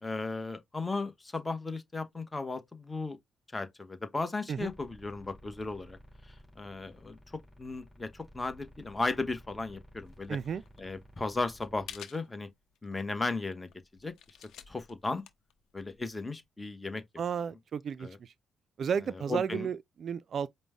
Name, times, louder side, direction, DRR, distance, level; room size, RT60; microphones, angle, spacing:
voice 1, 0.0-3.2 3.5-6.0 6.6-10.4 10.8-12.5 12.8-13.7 14.0-14.1 14.7-15.2 15.7-17.0 18.0-18.2 19.3-19.7, left 3 dB, 20° left, 1.0 m, -35 dB
sound 1, 4.5-12.0, equal, ahead, 2.7 m, -55 dB
sound 2, 10.0-16.5, left 9 dB, 80° left, 0.8 m, -53 dB
voice 2, 10.3-10.6 17.2-18.3 18.8-20.5, right 7 dB, 55° right, 0.3 m, -33 dB
5.1 x 2.1 x 3.5 m
cardioid pair, 90°, 0 cm